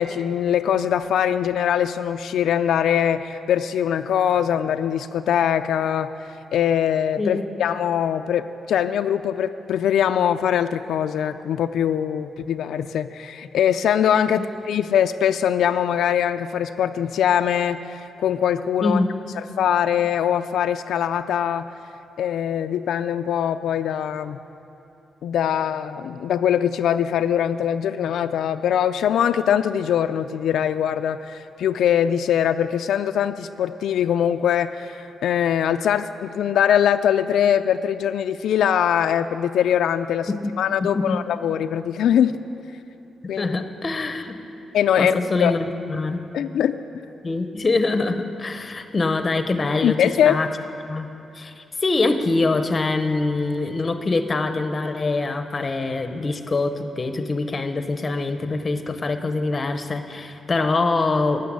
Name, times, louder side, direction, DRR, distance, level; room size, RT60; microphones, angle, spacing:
voice 1, 0.0-19.0 19.4-21.7 22.2-24.4 25.2-40.3 40.6-42.4 43.3-43.4 44.7-45.6 46.3-46.8 49.8-50.4, left 9 dB, 85° left, 9 dB, 0.3 m, -22 dB
voice 2, 18.8-19.1 40.3-40.4 40.8-41.2 43.4-44.4 45.0-46.2 47.2-50.5 50.9-61.4, left 3 dB, 25° left, 8 dB, 0.7 m, -24 dB
14.5 x 6.7 x 9.5 m, 2.8 s
wide cardioid pair, 160°, 0 cm